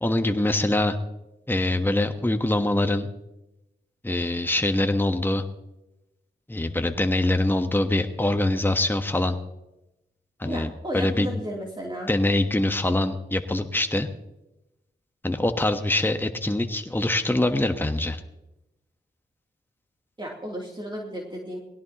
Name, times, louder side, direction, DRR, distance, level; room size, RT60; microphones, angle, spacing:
voice 1, 0.0-1.0 1.5-3.1 4.0-5.4 6.5-9.4 10.4-11.3 12.1-14.1 15.2-18.2, left 1 dB, 10° left, 7 dB, 1.2 m, -24 dB
voice 2, 10.4-12.1 20.2-21.6, equal, 25° right, -2 dB, 3.1 m, -34 dB
20.0 x 17.0 x 3.0 m, 0.93 s
cardioid pair, 45°, 19 cm